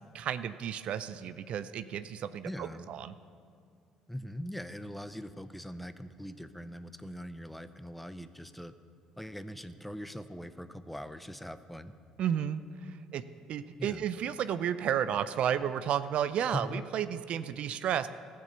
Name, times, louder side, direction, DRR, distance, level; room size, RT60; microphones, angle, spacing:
voice 1, 0.1-3.1 12.2-13.2 13.5-18.1, right 9 dB, 60° right, 13 dB, 0.4 m, -32 dB
voice 2, 2.4-2.9 4.1-8.7 9.2-11.9 13.8-14.1 16.5-16.8, equal, 5° left, 11 dB, 0.7 m, -41 dB
14.0 x 6.7 x 6.8 m, 2.2 s
hypercardioid pair, 60°, 2 cm